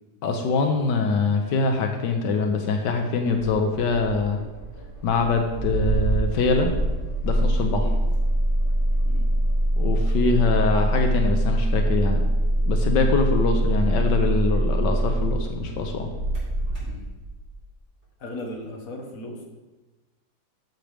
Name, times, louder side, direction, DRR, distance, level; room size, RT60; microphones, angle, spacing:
voice 1, 0.2-4.4 5.0-6.7 7.2-7.8 9.8-12.2 12.7-16.1, left 4 dB, 85° left, 4 dB, 1.5 m, -23 dB
Engine starting, 3.3-17.5, right 1 dB, 30° right, 2.8 m, -24 dB
voice 2, 18.2-19.4, left 1 dB, 55° left, 1 dB, 1.7 m, -37 dB
12.0 x 7.3 x 3.4 m, 1.2 s
omnidirectional pair, 1.8 m